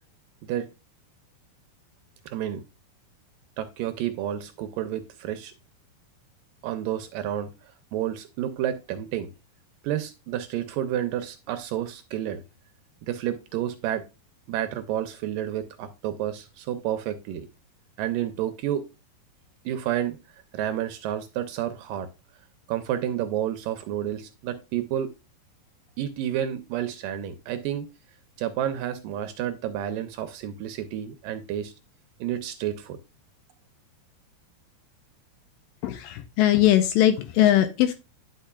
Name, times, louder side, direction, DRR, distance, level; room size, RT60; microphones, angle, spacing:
voice 1, 2.3-2.6 3.6-5.5 6.6-7.5 7.9-9.3 9.8-12.4 13.0-14.0 14.5-17.5 18.0-18.8 19.7-20.2 20.5-22.1 22.7-25.1 26.0-27.9 28.4-31.7 32.2-33.0, right 11 dB, 75° right, 9 dB, 2.1 m, -30 dB
voice 2, 35.8-37.9, left 12 dB, 80° left, 10 dB, 2.2 m, -20 dB
10.0 x 5.7 x 2.3 m, 0.28 s
omnidirectional pair, 4.4 m